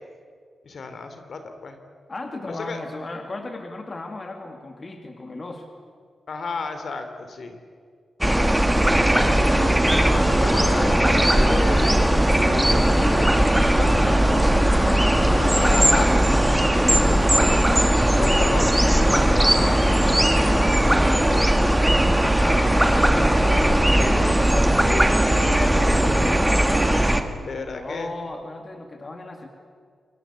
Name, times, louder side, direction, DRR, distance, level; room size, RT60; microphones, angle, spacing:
voice 1, 0.6-1.8 2.5-2.8 6.3-7.6 9.1-14.4 15.3-16.1 16.5-16.8 18.2-18.7 18.9-19.4 20.3-20.8 22.4-26.6 27.4-28.1, left 4 dB, 55° left, 8 dB, 3.1 m, -33 dB
voice 2, 2.1-5.7 13.9-16.1 16.7-18.0 18.8-21.5 27.1-29.5, left 2 dB, 35° left, 4 dB, 2.4 m, -35 dB
sound 1, 8.2-27.2, right 1 dB, 5° right, 1.8 m, -18 dB
28.5 x 23.5 x 8.4 m, 2.1 s
wide cardioid pair, 115°, 0 cm